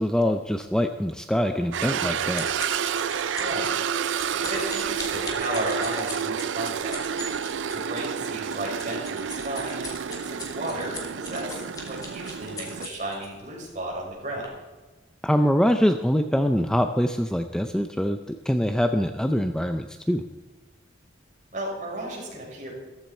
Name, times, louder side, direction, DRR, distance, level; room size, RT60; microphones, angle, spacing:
voice 1, 0.0-2.5 15.2-18.2 18.5-20.3, equal, 5° left, 7 dB, 0.5 m, -24 dB
sound 1, 1.6-13.3 13.9-14.1 14.4-14.5, left 2 dB, 20° left, 2.8 m, -40 dB
sound 2, 1.7-12.9, right 7 dB, 80° right, 0.4 m, -30 dB
voice 2, 3.3-3.8 4.3-7.1 7.7-14.5 21.5-22.7, right 1 dB, 40° right, -3 dB, 5.9 m, -34 dB
14.5 x 14.5 x 4.4 m, 1.2 s
head